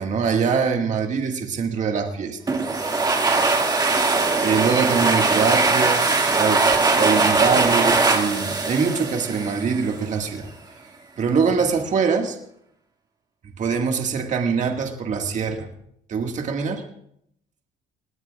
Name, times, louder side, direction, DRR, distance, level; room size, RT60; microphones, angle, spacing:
voice 1, 0.0-2.4 4.3-6.6 7.0-10.5 11.2-12.4 13.6-15.7 16.1-16.8, right 5 dB, 45° right, 3 dB, 1.9 m, -23 dB
sound 1, 2.5-9.9, right 3 dB, 25° right, 2.1 m, -20 dB
22.0 x 18.5 x 2.4 m, 0.72 s
cardioid pair, 110°, 17 cm